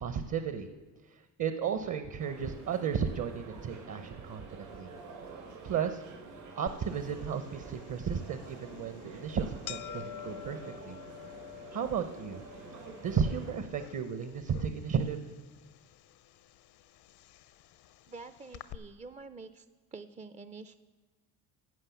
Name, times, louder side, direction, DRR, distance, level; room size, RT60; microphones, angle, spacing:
voice 1, 0.0-0.7 1.1-4.9 5.6-6.0 6.6-10.6 10.8-11.0 11.7-12.4 13.0-15.2, right 7 dB, 40° right, 9 dB, 0.9 m, -34 dB
sound 1, 2.2-13.6, right 4 dB, 85° right, 4.3 m, -48 dB
sound 2, 6.7-18.7, left 12 dB, 60° left, 0.7 m, -50 dB
voice 2, 18.1-19.7 19.9-20.8, right 4 dB, 15° right, 11 dB, 0.5 m, -47 dB
15.0 x 5.5 x 7.1 m, 1.3 s
hypercardioid pair, 60°, 44 cm